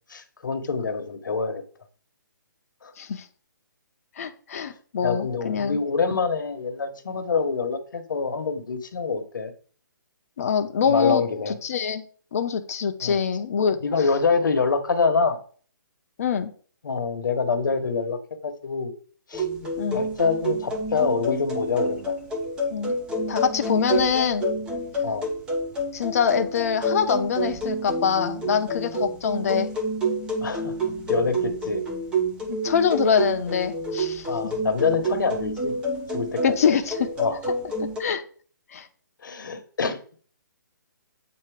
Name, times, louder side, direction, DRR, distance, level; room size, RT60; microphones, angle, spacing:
voice 1, 0.1-1.6 2.8-2.9 5.0-9.5 10.9-11.5 13.0-13.2 13.8-15.4 16.8-18.9 19.3-22.1 25.0-25.3 30.4-30.7 31.1-31.8 34.3-35.7 36.1-36.4 37.2-37.4 39.2-40.0, left 5 dB, 70° left, 8 dB, 1.1 m, -26 dB
voice 2, 4.2-5.8 10.4-12.0 12.3-13.8 16.2-16.5 19.8-20.0 22.7-23.0 23.3-24.5 25.9-29.7 32.5-34.3 36.4-37.1 38.0-38.2 38.7-38.9, left 7 dB, 45° left, 7 dB, 0.8 m, -24 dB
sound 1, 19.3-38.0, right 1 dB, 10° right, 0.7 m, -28 dB
7.9 x 2.8 x 4.8 m, 0.43 s
hypercardioid pair, 155°, 11 cm